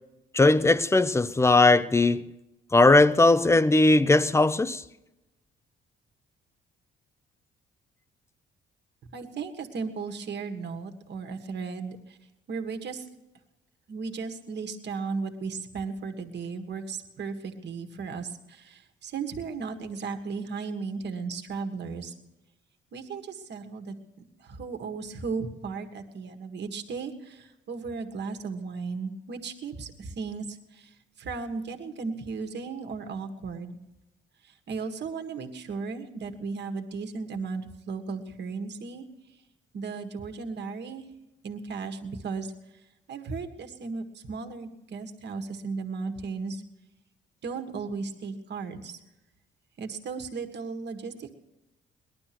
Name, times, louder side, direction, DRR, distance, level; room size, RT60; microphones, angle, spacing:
voice 1, 0.3-2.3 2.7-4.8, left 2 dB, 15° left, 0.7 m, -19 dB
voice 2, 9.0-12.2 12.5-13.1 13.9-22.1 22.9-23.9 24.4-33.7 34.4-39.1 39.7-41.1 41.4-42.5 43.1-46.6 47.4-49.0 49.8-51.3, right 4 dB, 60° right, 1.8 m, -35 dB
19.0 x 11.5 x 6.1 m
cardioid pair, 90°, 20 cm